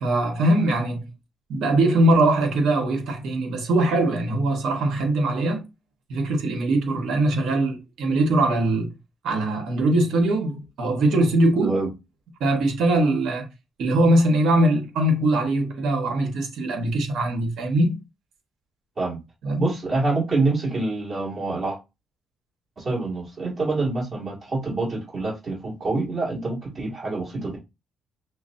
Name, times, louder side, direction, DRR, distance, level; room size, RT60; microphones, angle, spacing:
voice 1, 0.0-1.1 1.5-5.6 6.1-8.9 9.2-11.7 12.4-13.4 13.8-18.0 19.4-19.6, right 1 dB, 75° right, 1.2 m, -21 dB
voice 2, 19.6-21.8 22.8-27.6, right 3 dB, 45° right, 1.9 m, -26 dB
5.8 x 2.1 x 2.6 m
cardioid pair, 90°, 0 cm